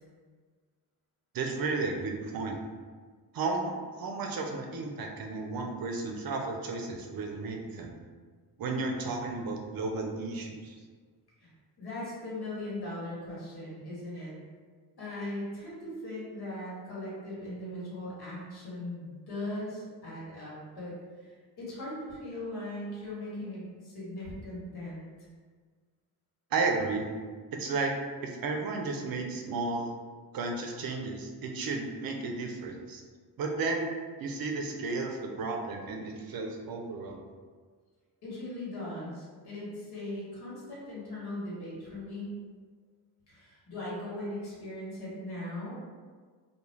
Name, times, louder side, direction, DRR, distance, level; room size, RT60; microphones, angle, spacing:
voice 1, 1.3-2.6 3.3-7.9 8.6-10.8 26.5-27.1 27.5-27.9 28.2-29.9 30.3-33.0 33.4-37.2, right 3 dB, 60° right, 2 dB, 0.5 m, -33 dB
voice 2, 11.8-14.3 15.0-20.9 21.2-25.3 38.2-42.4 43.3-45.7, left 1 dB, 70° left, -8 dB, 1.4 m, -39 dB
2.3 x 2.3 x 3.1 m, 1.5 s
cardioid pair, 95°, 41 cm